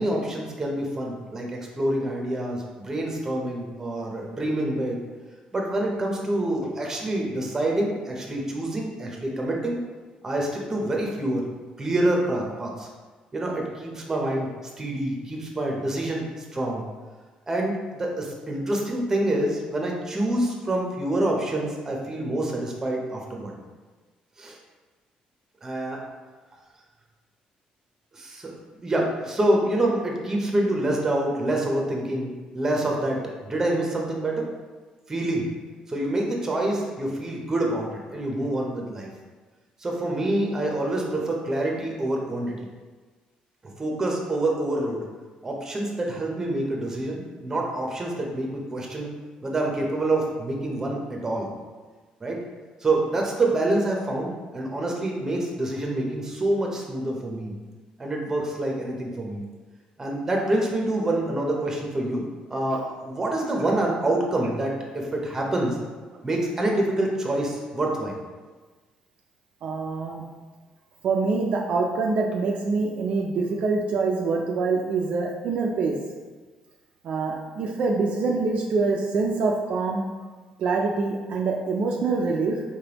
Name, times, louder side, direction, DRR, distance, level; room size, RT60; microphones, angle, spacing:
voice 1, 0.0-5.0 5.5-9.8 10.2-11.4 11.8-12.9 13.3-14.5 14.8-16.8 17.5-23.6 24.4-24.6 25.6-26.1 28.1-28.5 28.8-34.5 35.1-35.5 35.9-39.1 39.8-42.6 43.8-45.0 45.4-49.1 49.4-51.5 52.2-52.4 52.8-57.5 58.0-59.4 60.0-62.2 62.5-65.8 66.2-68.2, right 1 dB, 20° right, 0 dB, 0.7 m, -26 dB
voice 2, 69.6-70.2 71.0-76.0 77.0-80.0 80.6-82.6, right 4 dB, 55° right, -1 dB, 0.4 m, -25 dB
4.5 x 3.3 x 2.9 m, 1.3 s
cardioid pair, 145°, 3 cm